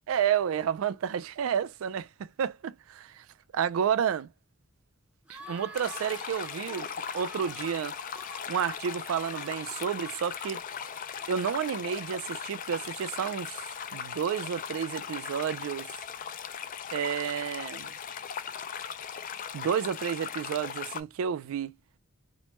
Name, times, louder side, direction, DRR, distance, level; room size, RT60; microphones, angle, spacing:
voice 1, 0.1-3.3 3.5-4.3 5.3-6.9 7.1-8.0 8.5-10.6 11.3-13.6 13.9-15.9 16.9-17.9 19.5-21.7, right 8 dB, 75° right, 0.3 m, -30 dB
sound 1, 5.3-12.2, right 1 dB, 5° right, 0.6 m, -49 dB
sound 2, 5.7-21.0, left 7 dB, 40° left, 0.3 m, -38 dB
3.1 x 2.1 x 2.9 m
head